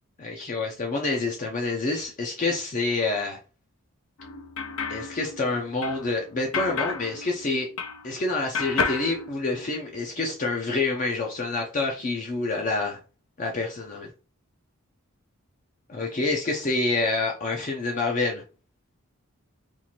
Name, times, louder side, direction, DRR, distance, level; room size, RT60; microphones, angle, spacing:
voice 1, 0.2-3.4 4.9-7.7 8.0-13.0 13.4-14.1 15.9-18.4, left 3 dB, 35° left, 0.5 m, -27 dB
sound 1, 4.2-8.2 8.5-10.0, left 5 dB, 80° left, 0.5 m, -32 dB
4.4 x 2.5 x 2.8 m
head